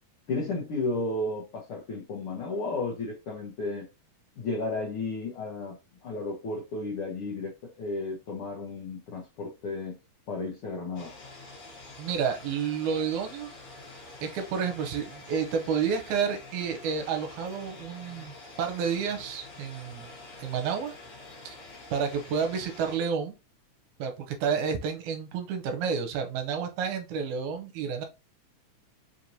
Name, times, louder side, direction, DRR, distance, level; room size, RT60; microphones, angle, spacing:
voice 1, 0.3-3.9 4.4-5.8 6.0-10.0 10.3-11.1, left 2 dB, 75° left, 1.2 m, -33 dB
sound 1, 11.0-23.0, left 2 dB, 55° left, 2.0 m, -47 dB
voice 2, 12.0-13.5 14.2-20.1 20.4-20.9 21.5-21.6 21.9-23.3 24.0-28.0, right 6 dB, 80° right, 2.1 m, -30 dB
5.0 x 2.9 x 2.6 m
omnidirectional pair, 3.6 m